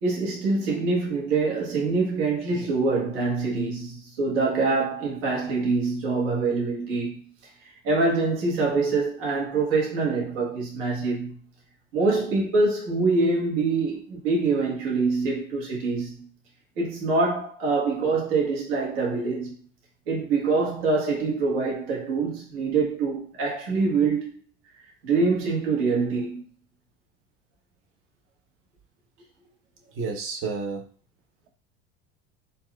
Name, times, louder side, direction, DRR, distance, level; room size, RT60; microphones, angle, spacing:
voice 1, 0.0-7.3 7.8-11.4 11.9-16.3 16.8-19.5 20.1-24.3 25.0-26.4, right 3 dB, 75° right, 1.3 m, -25 dB
voice 2, 30.0-30.8, right 4 dB, 50° right, 0.8 m, -31 dB
4.2 x 2.3 x 2.3 m
supercardioid pair, 100°, 29 cm